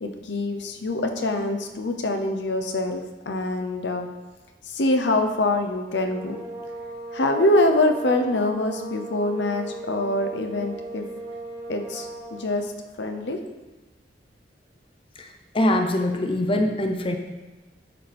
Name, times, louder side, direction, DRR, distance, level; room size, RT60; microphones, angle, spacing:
voice 1, 0.0-4.1 4.6-6.4 7.1-11.1 11.7-12.7 13.0-13.4, left 2 dB, 85° left, 5 dB, 0.8 m, -24 dB
sound 1, 5.9-12.6, right 2 dB, 20° right, 1.5 m, -37 dB
voice 2, 15.5-17.2, left 1 dB, 30° left, 4 dB, 0.7 m, -23 dB
9.5 x 6.8 x 3.5 m, 1.2 s
head